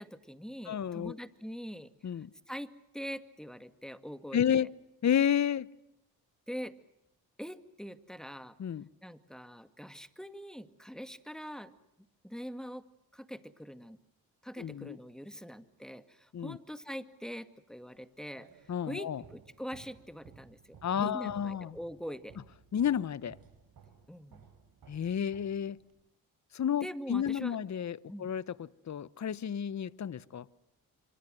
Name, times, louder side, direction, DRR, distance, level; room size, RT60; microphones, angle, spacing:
voice 1, 0.0-1.9 2.5-2.7 2.9-4.7 6.5-6.7 7.4-8.6 9.0-11.7 12.2-12.8 13.1-14.0 14.4-18.5 18.8-22.4 24.1-24.4 26.8-27.6 28.1-28.3, equal, ahead, 10 dB, 2.1 m, -43 dB
voice 2, 0.7-1.1 2.0-2.3 4.3-4.7 5.0-5.7 8.6-8.9 14.6-15.0 16.3-16.6 18.7-19.2 20.8-21.8 22.7-23.4 24.9-25.8 26.5-30.5, left 9 dB, 45° left, 19 dB, 1.0 m, -31 dB
sound 1, 17.9-26.1, right 6 dB, 65° right, 5.9 m, -58 dB
26.0 x 25.5 x 7.8 m, 0.83 s
supercardioid pair, 55°, 38 cm